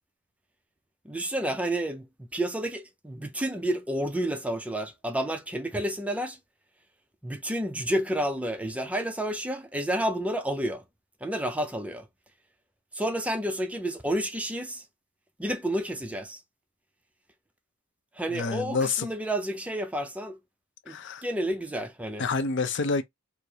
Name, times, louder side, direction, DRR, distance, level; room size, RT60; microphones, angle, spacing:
voice 1, 1.0-6.4 7.2-10.8 11.2-12.1 12.9-14.8 15.4-16.4 18.2-20.4 20.9-21.0 21.2-22.2, right 1 dB, 5° right, 0.4 m, -30 dB
voice 2, 18.3-19.1 20.9-21.2 22.2-23.0, left 4 dB, 60° left, 0.6 m, -28 dB
4.7 x 2.0 x 2.7 m
head